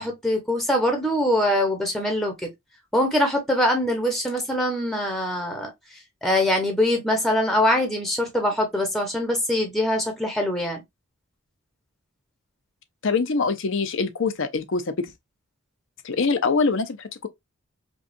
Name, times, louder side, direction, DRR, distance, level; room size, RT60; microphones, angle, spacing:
voice 1, 0.0-2.5 2.9-10.8, left 1 dB, ahead, 0.9 m, -23 dB
voice 2, 13.0-14.9 16.0-17.3, left 4 dB, 60° left, 0.6 m, -24 dB
5.2 x 2.4 x 2.5 m
head